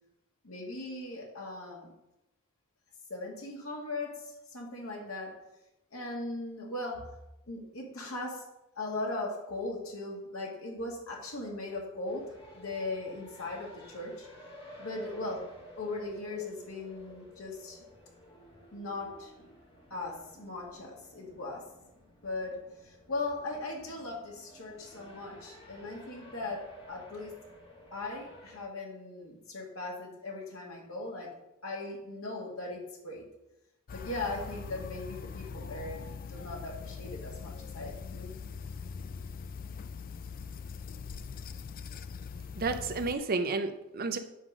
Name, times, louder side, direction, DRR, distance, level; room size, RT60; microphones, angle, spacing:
voice 1, 0.4-1.9 3.1-5.5 5.9-7.2 7.5-8.5 8.8-14.3 14.8-15.5 15.8-17.8 18.7-19.3 19.9-21.7 22.2-27.3 27.9-31.3 31.6-33.3 33.9-38.4, left 2 dB, 85° left, -1 dB, 2.0 m, -39 dB
sound 1, 12.0-28.6, left 1 dB, 25° left, 1.9 m, -53 dB
sound 2, 33.9-43.2, left 5 dB, 40° left, 0.4 m, -42 dB
voice 2, 42.6-44.2, right 3 dB, 45° right, 8 dB, 0.6 m, -31 dB
9.3 x 3.8 x 6.2 m, 0.90 s
head